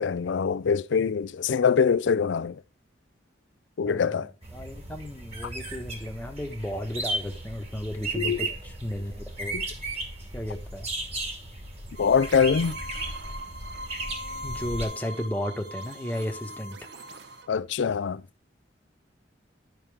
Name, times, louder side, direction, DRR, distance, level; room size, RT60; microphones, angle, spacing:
voice 1, 0.0-2.6 3.8-4.3 8.2-8.4 9.5-9.6 12.0-12.8 17.5-18.2, left 6 dB, 75° left, 0.4 m, -24 dB
voice 2, 3.8-9.6 10.3-10.9 14.4-16.9, equal, 10° left, 1.1 m, -34 dB
sound 1, 4.4-14.9, right 2 dB, 35° right, 2.2 m, -35 dB
sound 2, 12.0-17.5, equal, 65° right, 0.9 m, -41 dB
11.0 x 5.8 x 3.5 m
head